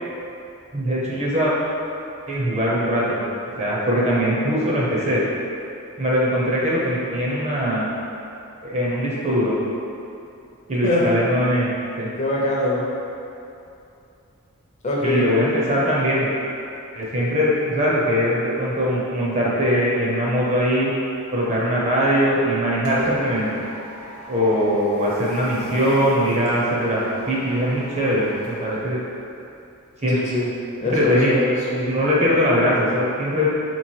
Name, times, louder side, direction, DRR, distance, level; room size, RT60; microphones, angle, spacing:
voice 1, 0.7-1.5 2.3-3.2 3.6-5.2 6.0-7.9 8.6-9.5 10.7-11.7 12.0-12.1 15.0-16.3 16.9-20.9 21.3-23.6 24.3-29.0 30.0-30.2 30.9-31.3 31.7-33.5, equal, 30° right, -6 dB, 0.7 m, -21 dB
voice 2, 12.2-12.8 14.8-15.4 30.1-30.5 30.8-32.0, left 1 dB, 30° left, -5 dB, 0.6 m, -23 dB
sound 1, 22.5-29.5, right 1 dB, 70° right, 0.8 m, -37 dB
3.3 x 3.0 x 4.4 m, 2.7 s
head